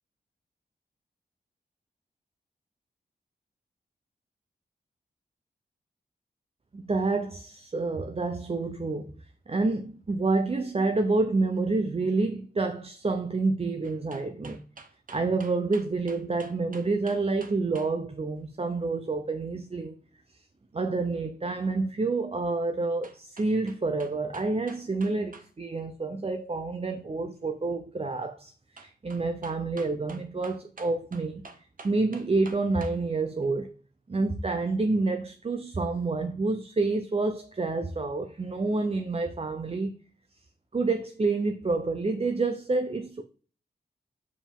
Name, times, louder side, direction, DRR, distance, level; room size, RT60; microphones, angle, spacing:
voice 1, 6.7-14.6 15.1-19.9 20.7-31.5 31.8-33.8 34.1-39.9 40.7-43.2, right 3 dB, 35° right, 0.7 m, -28 dB
sound 1, 13.8-17.9 23.0-25.5 25.8-25.9 28.8-33.0 33.4-33.5, right 3 dB, 50° right, 1.0 m, -48 dB
7.1 x 4.8 x 3.6 m
cardioid pair, 60°, 18 cm